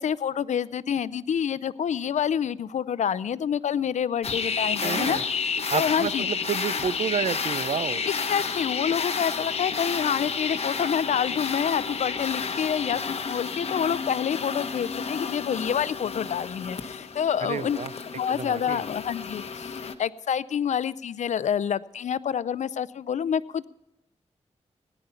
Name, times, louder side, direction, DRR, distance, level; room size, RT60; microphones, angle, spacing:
voice 1, 0.0-5.2 5.7-6.3 8.3-17.8 18.1-23.7, left 8 dB, 85° left, 18 dB, 0.5 m, -27 dB
sound 1, 4.2-19.9, left 5 dB, 60° left, 1.0 m, -31 dB
voice 2, 4.8-5.2 5.7-8.0 17.4-17.9 18.3-18.8, right 7 dB, 70° right, 17 dB, 0.5 m, -30 dB
18.0 x 10.0 x 5.6 m, 0.93 s
wide cardioid pair, 110°, 12 cm